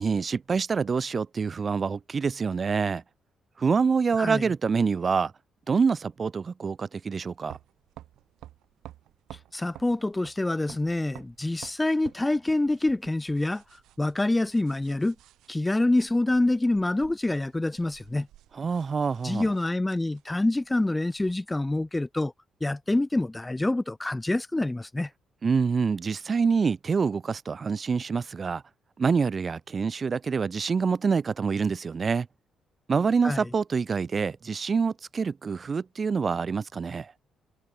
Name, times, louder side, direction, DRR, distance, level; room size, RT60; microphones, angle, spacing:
voice 1, 0.0-3.0 3.6-5.3 5.7-7.6 18.5-19.5 25.4-28.6 29.0-32.3 32.9-37.1, right 5 dB, 40° right, 0.9 m, -26 dB
sound 1, 7.4-21.4, right 14 dB, 85° right, 6.4 m, -52 dB
voice 2, 9.5-13.6 14.0-15.2 15.5-18.3 19.2-22.3 22.6-25.1 33.2-33.4, left 2 dB, 15° left, 0.3 m, -26 dB
cardioid pair, 90°, 0 cm